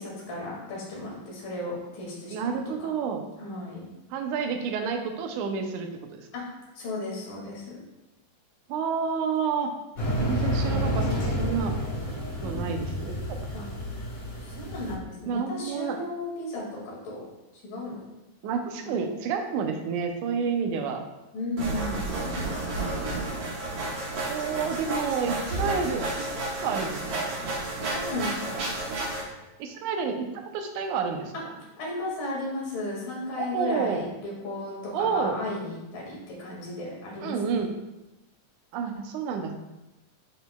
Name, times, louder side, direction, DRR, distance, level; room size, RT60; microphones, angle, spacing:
voice 1, 0.0-2.9 3.4-3.9 6.3-6.4 6.8-7.7 13.5-13.6 14.4-17.2 17.6-18.0 18.4-19.0 21.3-23.2 27.9-28.7 31.8-37.6, left 2 dB, 70° left, -4 dB, 3.6 m, -35 dB
voice 2, 2.3-3.2 4.1-6.3 8.7-9.7 10.2-11.8 12.4-13.5 15.3-16.0 18.4-21.0 24.2-26.3 26.6-27.4 29.6-31.3 33.4-34.0 34.9-35.4 37.2-37.8 38.7-39.6, right 6 dB, 75° right, 4 dB, 1.9 m, -29 dB
sound 1, 10.0-14.9, equal, 90° left, 0.7 m, -29 dB
sound 2, 21.6-29.2, right 2 dB, 55° right, 2.0 m, -31 dB
10.0 x 4.9 x 2.2 m, 0.98 s
omnidirectional pair, 4.1 m